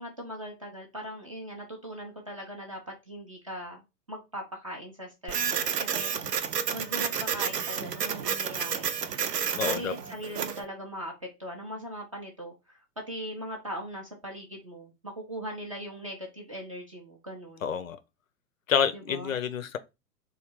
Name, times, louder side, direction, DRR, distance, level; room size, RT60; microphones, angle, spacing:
voice 1, 0.0-3.8 4.1-6.1 6.5-8.9 9.6-17.7 18.9-19.4, equal, 25° right, 0.4 m, -40 dB
Printer, 5.3-10.6, right 7 dB, 75° right, 0.6 m, -30 dB
voice 2, 9.5-9.9 17.6-18.0 18.7-19.8, left 7 dB, 55° left, 0.5 m, -28 dB
3.1 x 2.2 x 3.5 m
figure-of-eight pair, 110°, 48 cm